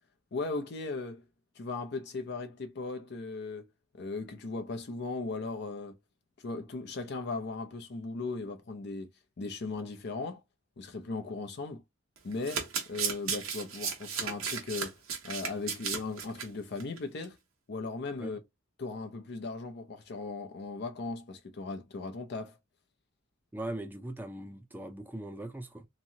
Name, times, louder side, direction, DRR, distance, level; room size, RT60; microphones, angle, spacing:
voice 1, 0.3-1.2 1.6-3.7 3.9-6.0 6.4-9.1 9.4-10.4 10.8-11.8 12.2-14.9 15.2-17.4 17.7-18.4 18.8-22.6, left 3 dB, 55° left, 0.6 m, -37 dB
Domestic sounds home sounds, 12.2-16.5 16.8-17.0 17.2-17.3, right 6 dB, 90° right, 1.2 m, -34 dB
voice 2, 23.5-25.9, right 1 dB, 10° right, 0.5 m, -40 dB
3.0 x 2.6 x 2.7 m
head